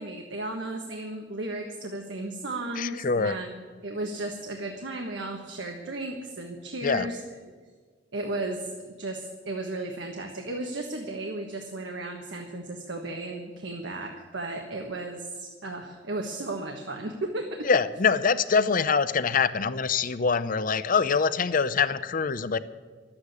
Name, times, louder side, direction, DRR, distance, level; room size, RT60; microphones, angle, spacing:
voice 1, 0.0-7.2 8.1-17.7, right 2 dB, 85° right, 2 dB, 1.4 m, -35 dB
voice 2, 2.8-3.4 6.8-7.1 17.6-22.6, left 5 dB, 50° left, 14 dB, 0.6 m, -24 dB
12.0 x 8.7 x 9.6 m, 1.5 s
head